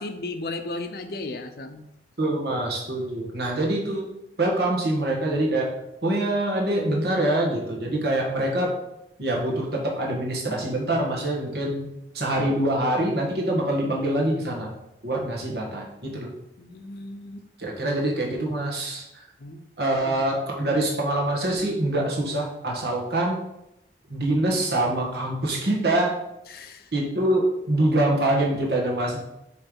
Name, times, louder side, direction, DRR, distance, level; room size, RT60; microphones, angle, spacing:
voice 1, 0.0-1.8 16.6-17.5 19.4-20.3 26.5-26.9, left 2 dB, 60° left, 8 dB, 0.6 m, -36 dB
voice 2, 2.2-4.1 4.4-5.7 6.0-8.7 9.2-11.9 12.1-14.7 15.0-16.3 17.6-19.0 19.8-23.4 24.1-26.2 26.9-29.2, right 1 dB, 65° right, -1 dB, 1.6 m, -25 dB
6.8 x 3.3 x 5.4 m, 0.87 s
head